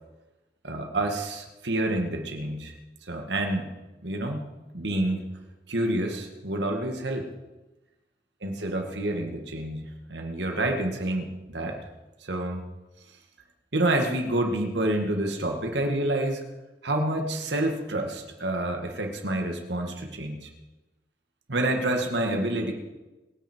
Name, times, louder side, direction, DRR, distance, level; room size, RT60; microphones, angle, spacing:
voice 1, 0.6-2.7 3.0-3.7 4.0-4.5 4.7-5.3 5.7-7.3 8.4-11.8 12.2-12.7 13.7-16.4 16.8-20.5 21.5-22.7, right 1 dB, 90° right, 3 dB, 2.2 m, -28 dB
23.0 x 9.9 x 4.7 m, 1.1 s
head